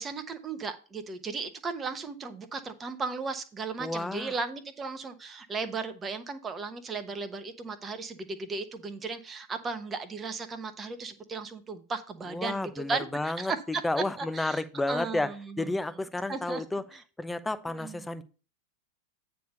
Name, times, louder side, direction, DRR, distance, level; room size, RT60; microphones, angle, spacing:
voice 1, 0.0-13.8 14.2-14.6 14.9-15.7 16.3-16.6 17.7-18.0, right 4 dB, 20° right, 9 dB, 1.0 m, -36 dB
voice 2, 3.8-4.3 12.3-16.8 17.2-18.2, left 2 dB, 5° left, 14 dB, 0.7 m, -31 dB
9.2 x 3.5 x 6.7 m, 0.35 s
figure-of-eight pair, 90°, 0 cm